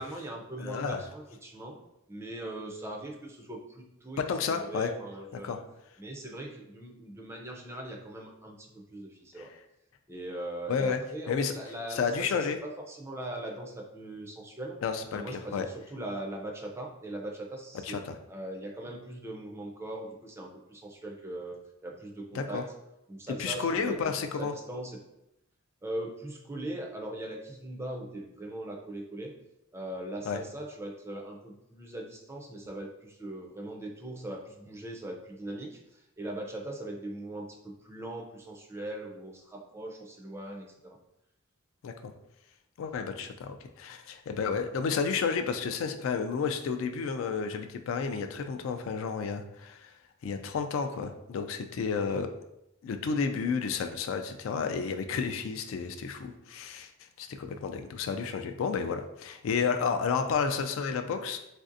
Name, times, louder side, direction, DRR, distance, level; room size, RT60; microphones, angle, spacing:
voice 1, 0.0-1.8 2.1-5.6 6.0-9.5 10.1-14.8 15.1-18.0 18.3-22.6 23.1-25.0 25.8-29.3 29.7-41.0 52.0-52.2, right 1 dB, 15° right, 0 dB, 0.4 m, -40 dB
voice 2, 0.6-1.0 4.2-4.9 5.4-5.6 9.4-9.5 10.7-11.0 11.3-11.5 11.9-12.6 14.8-15.7 17.8-18.0 22.3-22.6 23.4-24.5 30.3-30.4 41.8-42.1 42.8-49.9 50.2-52.3 52.8-56.9 57.2-61.4, left 5 dB, 70° left, 8 dB, 0.3 m, -31 dB
3.2 x 2.5 x 2.5 m, 0.85 s
head